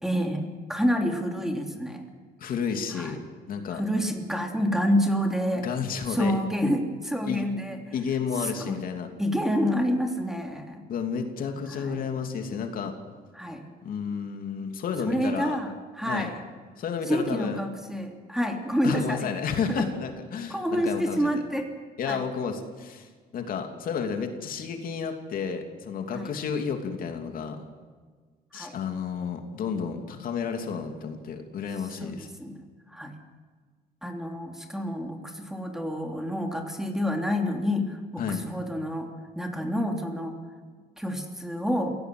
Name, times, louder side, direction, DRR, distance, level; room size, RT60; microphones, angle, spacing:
voice 1, 0.0-2.0 2.9-3.1 3.7-5.7 6.1-7.8 8.4-8.8 9.2-10.8 11.7-12.0 13.3-13.6 15.1-16.4 17.1-19.3 19.7-19.8 20.5-21.7 22.1-22.2 26.1-26.3 28.5-28.7 32.0-32.6 32.9-33.2 34.0-39.1 39.3-40.4 41.0-41.9, equal, 5° right, 3 dB, 3.3 m, -28 dB
voice 2, 2.4-3.2 3.5-3.8 5.6-6.3 7.3-7.4 7.9-9.1 10.9-12.9 13.8-15.6 16.0-16.3 16.8-17.6 18.8-21.2 22.0-27.6 28.5-32.3 38.2-38.4, left 6 dB, 55° left, 5 dB, 2.9 m, -31 dB
27.0 x 17.5 x 7.9 m, 1.5 s
cardioid pair, 110°, 17 cm